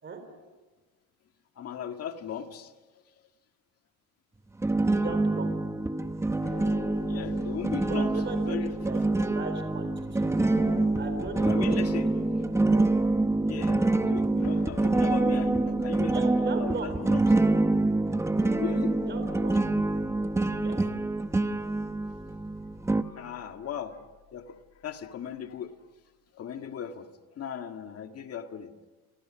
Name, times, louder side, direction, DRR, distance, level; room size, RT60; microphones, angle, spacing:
voice 1, 1.6-2.7 7.1-8.7 11.4-12.1 13.5-16.2 16.4-17.2 18.5-19.0 22.9-24.0 24.3-24.6 24.8-25.7 26.3-27.1 27.4-28.7, left 8 dB, 40° left, 6 dB, 1.9 m, -37 dB
sound 1, 4.6-23.0, right 2 dB, 5° right, 0.8 m, -26 dB
voice 2, 4.9-5.5 7.9-10.3 10.9-12.2 12.5-12.9 16.1-16.9 19.1-19.6 20.6-20.8, right 4 dB, 30° right, 7 dB, 4.0 m, -38 dB
sound 2, 6.4-24.6, left 9 dB, 65° left, 3.3 m, -47 dB
29.5 x 24.5 x 6.3 m, 1.3 s
cardioid pair, 150°, 37 cm